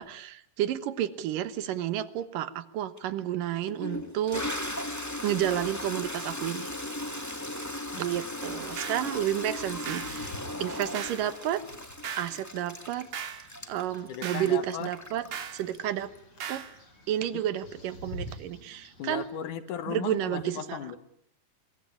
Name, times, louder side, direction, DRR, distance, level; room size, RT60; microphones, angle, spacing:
voice 1, 0.0-4.4 5.2-6.7 8.0-10.3 10.6-11.6 12.2-13.1 13.7-15.3 15.5-16.1 16.5-16.6 17.1-19.3 19.9-20.9, right 11 dB, 85° right, 13 dB, 2.9 m, -31 dB
Toilet flush, 3.0-3.1 3.7-16.2, left 1 dB, 5° left, 1.3 m, -37 dB
sound 1, 8.8-9.1 9.9-10.2 10.9-11.3 12.0-12.4 13.1-13.5 14.2-14.5 15.3-15.6 16.4-16.7, right 8 dB, 55° right, 2.9 m, -37 dB
sound 2, 9.4-19.3, left 1 dB, 40° left, 5.8 m, -49 dB
voice 2, 14.1-14.9 17.3-17.4 19.0-21.0, left 9 dB, 70° left, 12 dB, 2.9 m, -36 dB
24.5 x 22.5 x 9.8 m, 0.69 s
omnidirectional pair, 3.8 m